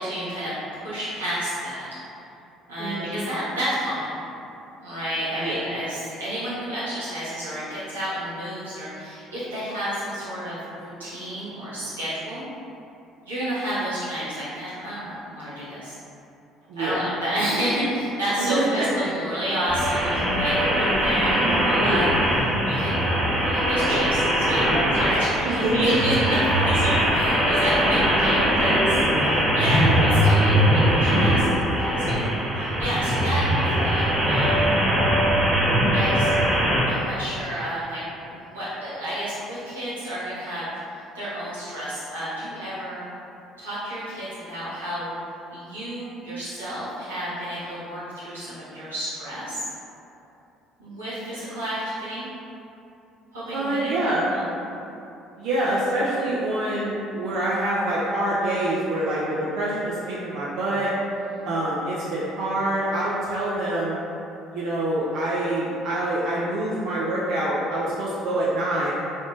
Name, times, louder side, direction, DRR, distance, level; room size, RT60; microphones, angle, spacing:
voice 1, 0.0-1.8 2.7-4.1 4.8-12.5 13.2-16.0 16.8-23.0 23.3-26.4 26.6-29.9 30.2-32.3 32.5-34.7 35.9-36.3 36.9-38.0 38.3-43.1 43.6-45.1 45.5-49.6 50.8-52.3 53.3-54.5 61.1-61.5, equal, 85° right, -13 dB, 1.3 m, -30 dB
voice 2, 2.8-3.2 5.4-5.6 16.7-17.0 18.4-18.9 25.4-26.1 26.9-27.3 27.9-28.0 29.7-30.2 53.5-54.3 55.4-60.9 61.4-64.0 64.5-68.9, right 1 dB, 60° right, -7 dB, 0.5 m, -26 dB
sound 1, 19.7-36.8, equal, 15° right, 1.1 m, -21 dB
3.9 x 3.5 x 2.4 m, 2.8 s
figure-of-eight pair, 55°, 0 cm